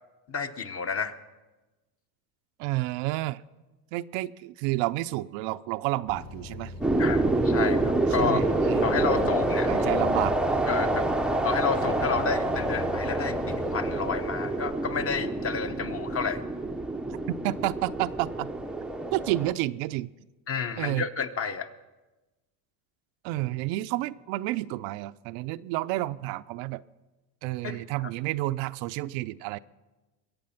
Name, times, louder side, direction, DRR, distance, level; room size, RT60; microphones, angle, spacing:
voice 1, 0.3-1.1 7.0-8.4 8.8-9.7 10.7-11.0 11.4-16.4 20.5-21.7 27.6-27.8, left 6 dB, 30° left, 9 dB, 0.9 m, -30 dB
voice 2, 2.6-3.4 3.9-6.7 8.2-9.3 9.7-10.4 17.4-18.5 19.1-20.1 20.8-21.1 23.2-26.8 27.4-29.6, right 17 dB, 70° right, 12 dB, 0.6 m, -30 dB
sound 1, 6.1-14.1, left 3 dB, 50° left, 4.4 m, -42 dB
sound 2, 6.8-19.5, right 2 dB, ahead, 0.5 m, -27 dB
22.5 x 8.4 x 5.8 m, 1.1 s
supercardioid pair, 120°, 48 cm